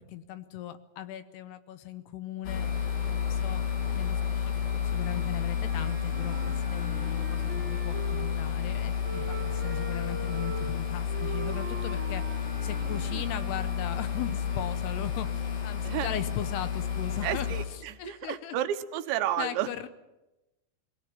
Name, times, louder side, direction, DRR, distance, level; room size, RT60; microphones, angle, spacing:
voice 1, 0.0-2.7 3.0-3.6 3.9-17.5 18.0-18.6 19.4-19.9, left 11 dB, 75° left, 11 dB, 2.8 m, -38 dB
sound 1, 2.4-17.6, left 7 dB, 55° left, 4.3 m, -31 dB
Wind instrument woodwind instrument, 5.6-8.5 9.0-13.9, right 3 dB, 40° right, 1.9 m, -42 dB
voice 2, 12.8-13.2 15.8-16.1 17.2-19.7, right 12 dB, 80° right, 9 dB, 3.2 m, -32 dB
21.5 x 17.0 x 8.9 m, 0.99 s
omnidirectional pair, 5.2 m